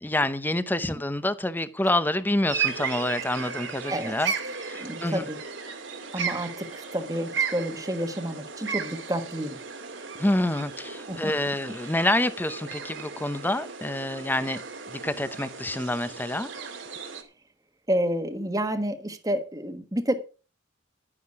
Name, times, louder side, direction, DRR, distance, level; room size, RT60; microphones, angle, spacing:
voice 1, 0.0-5.2 10.2-14.6 14.9-16.5, left 1 dB, 10° left, 0.8 m, -27 dB
sound 1, 2.5-17.2, right 6 dB, 80° right, 2.3 m, -35 dB
voice 2, 4.8-5.4 6.1-9.6 11.1-11.3 17.9-20.1, equal, 20° right, 1.4 m, -29 dB
11.5 x 9.8 x 4.8 m
head